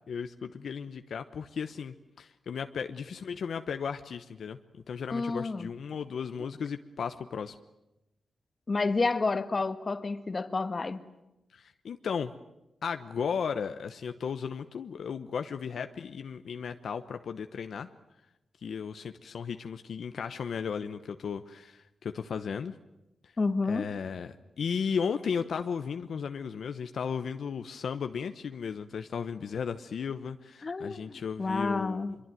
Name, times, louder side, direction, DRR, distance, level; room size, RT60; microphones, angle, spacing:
voice 1, 0.1-7.6 11.5-12.3 12.8-17.9 18.6-22.7 23.2-23.3 23.6-32.2, left 6 dB, 75° left, 8 dB, 1.0 m, -35 dB
voice 2, 5.1-5.7 8.7-11.0 23.4-23.9 30.6-32.1, left 3 dB, 40° left, 10 dB, 1.6 m, -30 dB
24.0 x 23.0 x 9.2 m, 0.93 s
cardioid pair, 85°, 0 cm